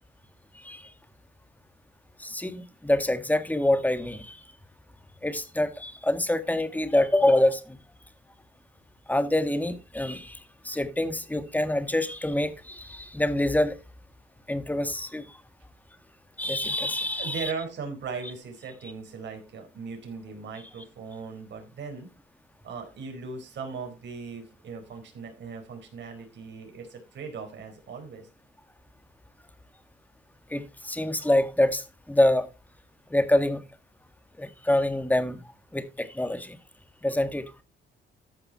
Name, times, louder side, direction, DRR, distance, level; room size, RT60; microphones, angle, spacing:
voice 1, 0.5-0.9 2.2-4.4 5.2-7.8 9.1-13.8 14.5-15.4 16.4-17.5 30.5-32.5 33.1-33.6 34.4-35.4 35.7-36.6 37.0-37.5, left 1 dB, 10° left, 1.6 m, -26 dB
voice 2, 17.2-22.1 22.6-28.3, right 5 dB, 65° right, 4.3 m, -38 dB
14.0 x 5.7 x 4.4 m
cardioid pair, 90°, 20 cm